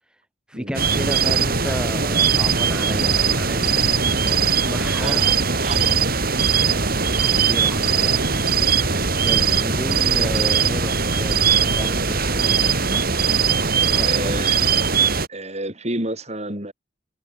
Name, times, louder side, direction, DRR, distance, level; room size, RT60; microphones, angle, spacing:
voice 1, 0.5-5.2 7.2-13.2 13.7-14.6, equal, 5° right, 4.0 m, -33 dB
sound 1, 0.7-15.3, right 6 dB, 50° right, 4.7 m, -20 dB
voice 2, 5.0-6.0 14.0-14.6 15.3-16.7, right 2 dB, 35° right, 7.4 m, -30 dB
head